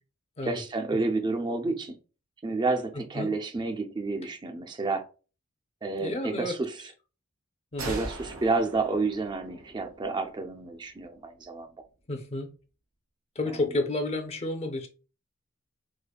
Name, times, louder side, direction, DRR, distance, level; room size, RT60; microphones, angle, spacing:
voice 1, 0.4-2.0 2.4-5.1 5.8-6.8 7.8-11.7 13.5-13.6, right 3 dB, 20° right, 0.4 m, -30 dB
voice 2, 6.0-6.6 7.7-8.0 12.1-12.5 13.4-14.9, left 2 dB, 30° left, 0.6 m, -31 dB
sound 1, 7.8-11.3, right 2 dB, 90° right, 1.2 m, -41 dB
4.9 x 2.1 x 2.3 m
head